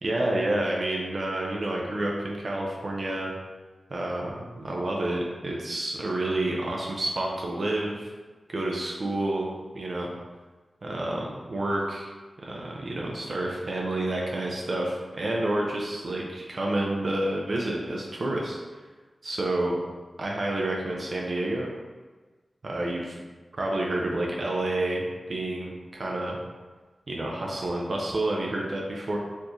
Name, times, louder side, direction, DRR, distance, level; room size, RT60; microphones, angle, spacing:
voice 1, 0.0-3.3 3.9-8.1 8.5-9.5 9.7-10.1 10.8-12.1 12.4-18.6 19.2-19.8 20.2-21.7 22.6-23.2 23.6-26.4 27.1-29.2, right 1 dB, 60° right, -2 dB, 0.5 m, -29 dB
4.2 x 2.6 x 3.0 m, 1.3 s
wide cardioid pair, 65°, 0 cm